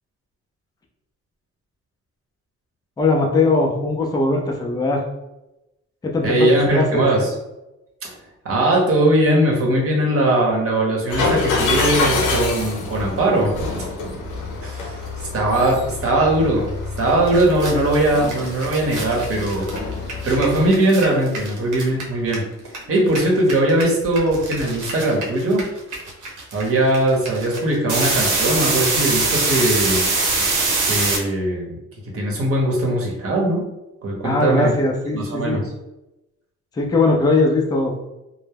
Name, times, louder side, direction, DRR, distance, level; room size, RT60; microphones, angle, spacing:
voice 1, 3.0-5.0 6.0-7.1 34.2-35.6 36.7-38.0, left 3 dB, 15° left, 1 dB, 0.4 m, -20 dB
voice 2, 6.2-7.3 8.0-8.1 8.4-13.5 14.6-15.0 15.3-16.7 17.0-19.6 20.2-25.6 26.5-30.0 30.8-31.8 32.1-33.6 34.0-34.7 35.1-35.6, right 1 dB, 50° right, -1 dB, 0.9 m, -20 dB
sound 1, 11.1-20.7, left 3 dB, 90° left, 0.6 m, -26 dB
sound 2, 17.0-17.1 17.3-22.8 23.0-31.2, right 3 dB, 80° right, 0.8 m, -23 dB
2.2 x 2.0 x 3.3 m, 0.96 s
cardioid pair, 90°, 30 cm